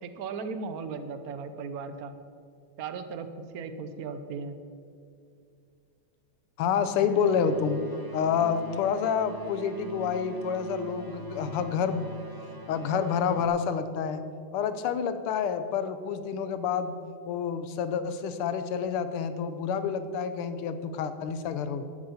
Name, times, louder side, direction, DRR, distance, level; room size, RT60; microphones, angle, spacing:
voice 1, 0.0-2.1 2.8-3.3 3.5-4.6, right 5 dB, 60° right, 10 dB, 1.0 m, -36 dB
voice 2, 6.6-7.8 8.1-12.1 12.7-14.2 14.5-17.0 17.3-21.8, left 7 dB, 90° left, 11 dB, 1.7 m, -28 dB
sound 1, 7.0-13.5, right 2 dB, 15° right, 0.8 m, -43 dB
12.0 x 7.9 x 7.0 m, 2.4 s
omnidirectional pair, 2.4 m